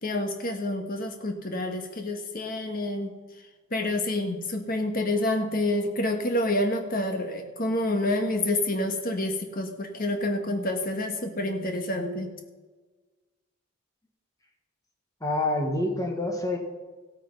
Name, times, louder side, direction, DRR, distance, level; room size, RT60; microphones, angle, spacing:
voice 1, 0.0-3.1 3.7-12.3, left 1 dB, 45° left, 5 dB, 1.6 m, -28 dB
voice 2, 15.2-16.6, left 2 dB, 15° left, 2 dB, 1.8 m, -27 dB
15.5 x 9.0 x 5.6 m, 1.3 s
head